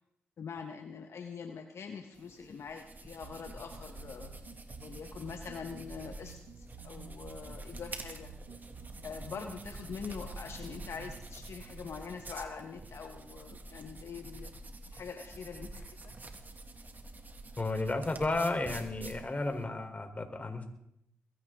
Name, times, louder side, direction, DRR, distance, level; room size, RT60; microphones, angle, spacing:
voice 1, 0.4-4.3 4.8-8.3 9.0-14.5 14.9-16.1, left 6 dB, 60° left, 5 dB, 1.5 m, -44 dB
sound 1, 2.1-19.6, right 2 dB, 35° right, 2.5 m, -47 dB
sound 2, 3.2-11.2, right 6 dB, 80° right, 2.1 m, -52 dB
voice 2, 17.6-20.6, left 2 dB, 30° left, 5 dB, 4.0 m, -33 dB
22.5 x 16.0 x 3.9 m, 0.74 s
supercardioid pair, 50°, 5 cm